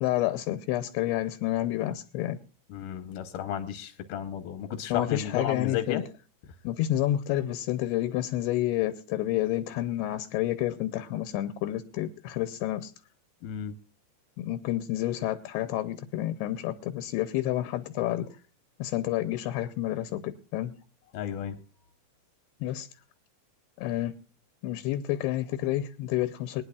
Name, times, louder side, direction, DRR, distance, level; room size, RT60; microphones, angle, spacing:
voice 1, 0.0-2.4 4.9-6.0 6.6-12.9 14.4-18.3 18.8-20.7 22.6-22.9 23.8-24.1 24.6-26.6, left 14 dB, 85° left, 2.7 m, -29 dB
voice 2, 2.7-6.0 13.4-13.7 21.1-21.6, left 9 dB, 70° left, 2.2 m, -33 dB
23.5 x 10.0 x 2.3 m
omnidirectional pair, 4.5 m